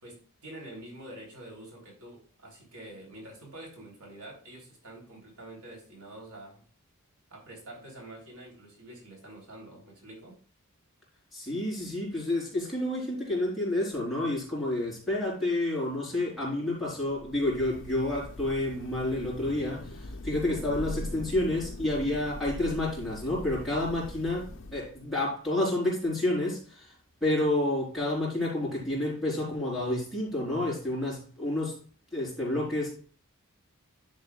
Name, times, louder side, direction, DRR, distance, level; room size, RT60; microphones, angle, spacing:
voice 1, 0.0-6.6 7.3-10.4, right 1 dB, 75° right, 3.4 m, -47 dB
voice 2, 11.3-26.9 27.2-31.8 32.1-33.0, left 1 dB, ahead, 4.3 m, -29 dB
Thunder / Rain, 17.1-25.1, left 1 dB, 55° left, 0.6 m, -41 dB
10.5 x 7.3 x 2.4 m
head